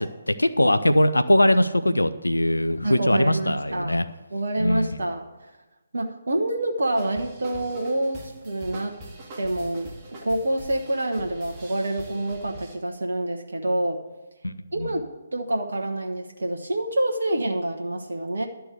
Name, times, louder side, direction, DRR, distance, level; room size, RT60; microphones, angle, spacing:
voice 1, 0.0-4.0 4.6-5.0 14.4-14.9, left 1 dB, 80° left, 11 dB, 0.6 m, -21 dB
voice 2, 2.8-4.0 4.3-5.2 5.9-9.0 9.4-9.9 10.2-14.0 14.7-18.5, right 1 dB, 60° right, 3 dB, 1.0 m, -27 dB
sound 1, 6.9-12.8, right 1 dB, 25° right, 1.8 m, -43 dB
11.5 x 4.6 x 8.1 m, 1.1 s
figure-of-eight pair, 140°, 0 cm